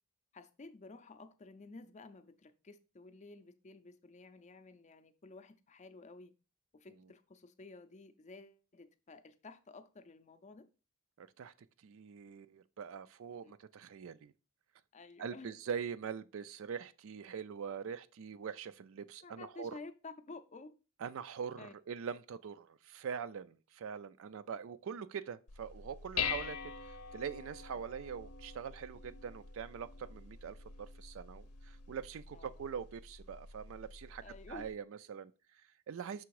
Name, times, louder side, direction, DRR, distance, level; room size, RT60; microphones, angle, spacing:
voice 1, 0.3-6.3 6.7-10.7 13.4-13.5 14.9-15.5 19.2-20.7 21.6-21.7 26.4-26.5 32.3-32.5 34.2-34.6, left 3 dB, 30° left, 0.5 m, -52 dB
voice 2, 11.2-11.5 11.8-14.3 15.2-19.8 21.0-26.6 26.8-36.2, right 7 dB, 60° right, 0.3 m, -43 dB
Dishes pots and pans, 25.5-34.7, left 7 dB, 85° left, 0.7 m, -44 dB
6.0 x 3.4 x 4.7 m
head